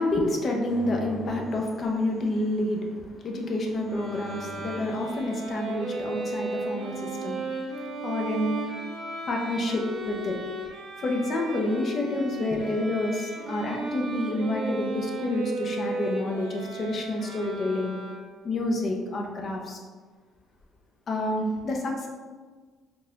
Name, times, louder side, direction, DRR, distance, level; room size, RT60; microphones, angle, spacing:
voice 1, 0.0-7.4 8.0-8.6 9.3-10.4 11.0-18.0 18.4-19.8 21.1-22.1, left 1 dB, 50° left, 1 dB, 0.6 m, -28 dB
sound 1, 0.6-2.6 3.6-5.1, right 2 dB, 5° right, 0.6 m, -44 dB
Bowed string instrument, 3.9-18.5, right 2 dB, 75° right, 0.8 m, -35 dB
3.9 x 2.7 x 2.4 m, 1.4 s
supercardioid pair, 80°, 0 cm